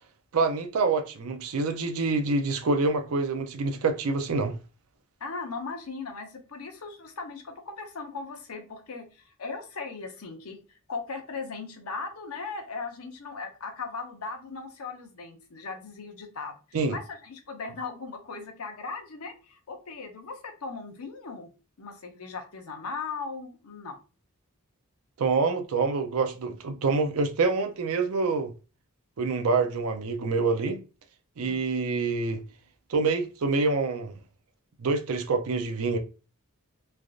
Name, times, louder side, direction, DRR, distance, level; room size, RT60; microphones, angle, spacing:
voice 1, 0.3-4.5 16.7-17.0 25.2-28.5 29.2-30.8 31.4-32.4 32.9-34.2 34.8-36.0, right 4 dB, 75° right, 0.5 m, -26 dB
voice 2, 5.2-21.5 21.8-24.0 31.4-31.6, left 4 dB, 80° left, 0.7 m, -38 dB
3.3 x 2.5 x 2.4 m
head